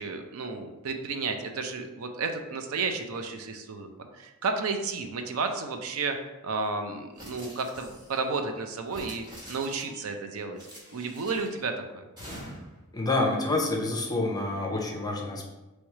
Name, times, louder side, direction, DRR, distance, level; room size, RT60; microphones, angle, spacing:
voice 1, 0.0-3.9 4.1-6.2 6.4-10.6 10.9-12.0, right 4 dB, 65° right, 5 dB, 0.5 m, -32 dB
sound 1, 7.2-8.2 8.8-10.0 10.6-11.6 12.2-12.8, equal, 20° right, 1.3 m, -45 dB
voice 2, 12.9-15.5, left 2 dB, 15° left, 0 dB, 0.6 m, -28 dB
3.1 x 3.1 x 4.7 m, 1.1 s
head